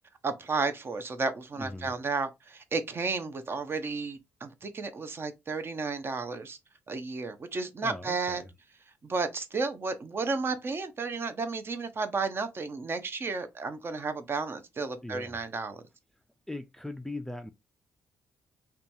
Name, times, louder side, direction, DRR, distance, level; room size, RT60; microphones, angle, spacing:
voice 1, 0.2-6.6 6.9-8.4 9.0-15.8, right 4 dB, 40° right, 0.6 m, -33 dB
voice 2, 1.6-1.9 7.8-8.5 15.0-15.4 16.5-17.5, left 2 dB, 5° left, 0.3 m, -39 dB
2.9 x 2.2 x 2.5 m
cardioid pair, 75°, 6 cm